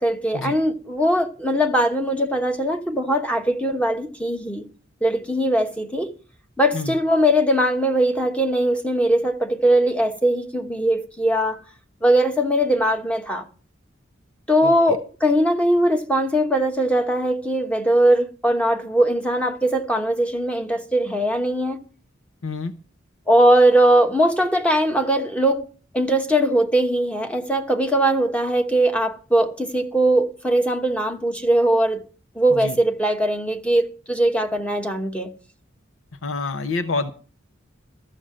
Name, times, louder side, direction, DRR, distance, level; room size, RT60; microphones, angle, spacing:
voice 1, 0.0-4.7 5.0-6.1 6.6-11.6 12.0-13.5 14.5-21.8 23.3-25.6 25.9-32.0 32.3-35.3, right 1 dB, 5° left, 1.0 m, -20 dB
voice 2, 14.6-15.0 22.4-22.7 32.5-32.8 36.2-37.1, left 3 dB, 80° left, 0.8 m, -27 dB
13.5 x 6.5 x 7.5 m
head